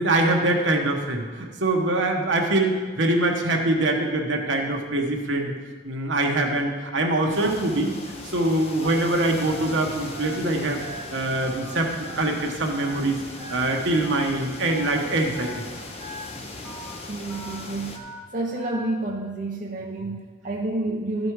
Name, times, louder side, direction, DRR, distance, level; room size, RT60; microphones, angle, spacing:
voice 1, 0.0-5.5 5.8-7.9 8.2-10.8 11.1-13.2 13.5-15.5, right 2 dB, 75° right, 1 dB, 1.2 m, -23 dB
sound 1, 7.3-18.0, left 2 dB, 30° left, 0.8 m, -39 dB
Telephone, 8.8-9.1 9.5-9.7 10.1-10.4 10.8-11.0 11.4-11.7 12.1-12.3 12.7-13.0 13.4-13.6 14.0-14.3 14.7-14.9 15.3-15.6 16.0-16.2 16.6-16.9 17.3-17.5 17.9-18.2 18.6-18.8, right 1 dB, 10° left, 1.8 m, -40 dB
voice 2, 17.1-18.1 18.3-21.3, right 2 dB, 40° right, -1 dB, 0.6 m, -29 dB
12.5 x 5.3 x 4.7 m, 1.4 s
head